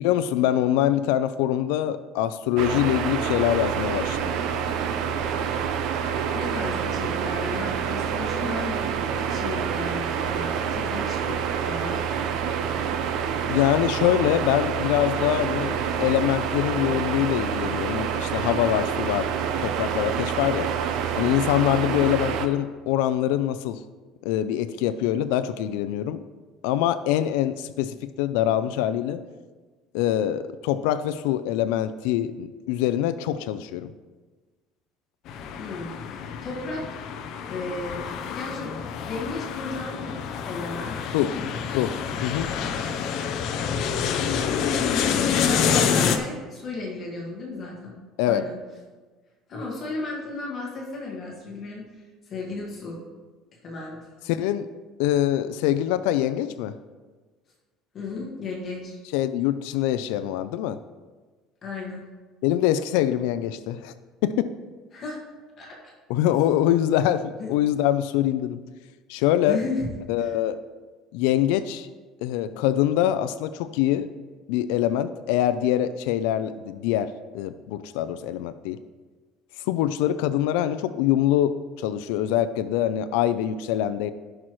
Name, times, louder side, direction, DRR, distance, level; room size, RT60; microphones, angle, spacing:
voice 1, 0.0-4.3 13.5-19.3 19.6-20.7 21.1-23.8 24.2-26.2 26.6-29.2 29.9-33.9 41.1-41.3 41.7-41.9 42.2-42.5 48.2-48.4 54.3-54.7 55.0-56.7 59.1-60.8 62.4-63.9 64.2-64.5 66.1-68.6 69.1-69.6 70.1-70.6 71.1-71.9 72.2-74.1 74.5-78.8 79.7-84.1, left 12 dB, 85° left, 12 dB, 0.4 m, -24 dB
sound 1, 2.6-22.5, right 7 dB, 55° right, 0.7 m, -27 dB
voice 2, 6.3-8.9 9.3-12.0 35.6-36.9 37.5-40.2 40.5-41.5 45.4-48.0 48.3-48.6 49.5-53.0 53.6-54.0 57.9-59.0 61.6-62.1 64.9-65.2 65.6-65.9 67.4-67.5 69.5-69.9 70.2-70.4, left 3 dB, 30° left, -2 dB, 1.7 m, -34 dB
sound 2, 35.3-46.2, left 7 dB, 50° left, 0.7 m, -27 dB
15.0 x 6.2 x 3.1 m, 1.3 s
cardioid pair, 175°, 0 cm